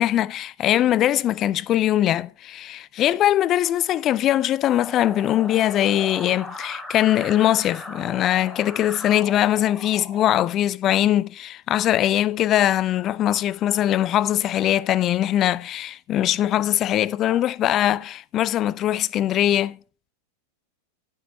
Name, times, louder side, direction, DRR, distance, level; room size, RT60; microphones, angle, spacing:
voice 1, 0.0-19.8, left 12 dB, 30° left, 0.5 m, -21 dB
sound 1, 4.8-10.4, left 2 dB, 10° left, 3.1 m, -38 dB
16.0 x 9.4 x 3.2 m
figure-of-eight pair, 90°, 0 cm